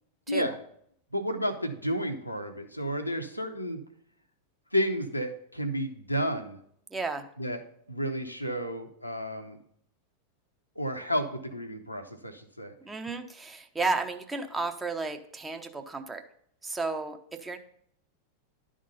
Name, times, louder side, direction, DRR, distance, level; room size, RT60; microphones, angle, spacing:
voice 1, 1.1-3.8 4.7-6.6 7.4-7.6 7.9-9.6 10.8-12.7, equal, 90° left, 5 dB, 0.8 m, -31 dB
voice 2, 6.9-7.2 12.8-16.2 16.6-17.6, right 3 dB, 15° right, 6 dB, 0.7 m, -33 dB
11.0 x 3.7 x 5.4 m, 0.67 s
figure-of-eight pair, 90°, 0 cm